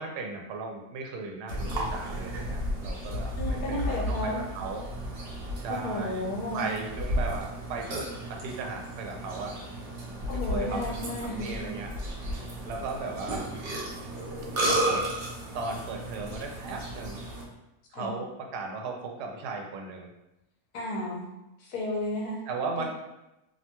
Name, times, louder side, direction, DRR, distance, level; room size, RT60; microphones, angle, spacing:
voice 1, 0.0-4.9 5.5-6.2 6.5-9.5 10.5-11.9 12.7-13.5 14.7-15.0 15.5-17.2 17.9-20.1 22.5-22.9, right 4 dB, 90° right, 1 dB, 1.1 m, -36 dB
Burping eructation, 1.5-17.4, right 1 dB, 60° right, 0.8 m, -33 dB
voice 2, 3.4-4.4 5.7-6.7 10.3-11.7 17.9-18.1 20.7-21.3 21.6-22.4, left 2 dB, 75° left, -2 dB, 1.2 m, -33 dB
2.9 x 2.2 x 2.8 m, 0.92 s
omnidirectional pair, 1.7 m